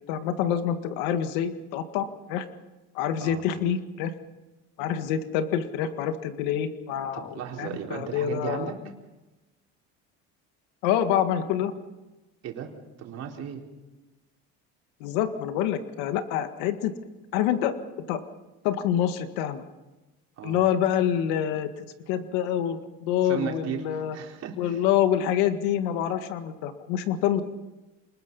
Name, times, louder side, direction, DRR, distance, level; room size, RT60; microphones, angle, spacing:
voice 1, 0.1-2.5 2.9-4.1 4.8-7.3 7.6-8.7 10.8-11.7 15.0-16.9 17.3-17.7 18.1-18.2 18.6-19.6 20.4-24.2 24.6-27.4, left 10 dB, 85° left, 9 dB, 1.9 m, -26 dB
voice 2, 7.1-8.8 12.4-12.7 13.0-13.7 20.4-20.6 23.2-24.8, right 8 dB, 50° right, 0 dB, 4.3 m, -35 dB
28.5 x 20.5 x 5.5 m, 1.1 s
cardioid pair, 130°, 32 cm